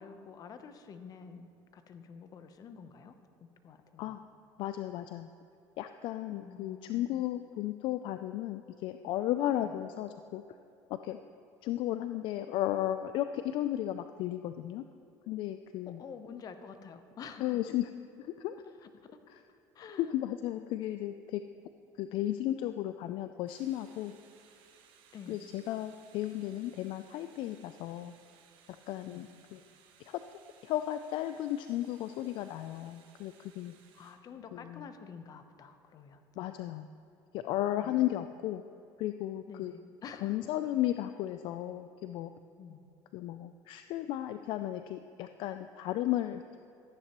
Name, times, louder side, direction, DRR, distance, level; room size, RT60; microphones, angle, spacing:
voice 1, 0.0-3.2 3.4-4.2 6.3-7.2 9.6-9.7 15.9-17.6 19.0-19.2 19.7-20.1 20.5-20.7 25.1-25.4 29.1-29.2 33.9-36.2 37.8-38.0 39.5-40.4 42.6-42.9, left 6 dB, 40° left, 9 dB, 0.8 m, -49 dB
voice 2, 4.6-5.3 5.8-10.4 10.9-11.2 11.6-14.8 15.3-16.0 17.4-17.9 18.2-18.6 19.3-19.4 20.0-21.4 22.0-24.2 25.3-28.1 28.9-29.6 30.0-30.2 30.6-33.7 34.5-34.9 36.4-36.9 37.3-38.6 39.0-39.7 40.2-42.3 43.1-46.6, left 13 dB, 60° left, 9 dB, 0.4 m, -34 dB
sound 1, 23.5-34.2, right 7 dB, 65° right, 1.1 m, -63 dB
14.0 x 9.9 x 3.0 m, 2.7 s
supercardioid pair, 110°, 9 cm